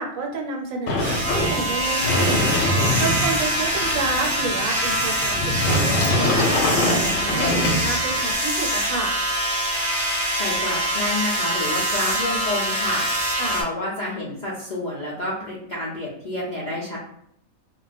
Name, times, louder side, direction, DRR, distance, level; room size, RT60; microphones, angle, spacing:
voice 1, 0.0-2.5 3.0-9.1 13.3-13.6, right 4 dB, 75° right, 1 dB, 1.0 m, -30 dB
Sliding door, 0.9-8.3, left 1 dB, 70° left, 1.0 m, -24 dB
sound 1, 1.0-13.6, equal, 15° right, 0.6 m, -24 dB
voice 2, 10.3-17.0, left 1 dB, 55° left, -5 dB, 0.5 m, -29 dB
2.3 x 2.1 x 3.9 m, 0.73 s
omnidirectional pair, 1.5 m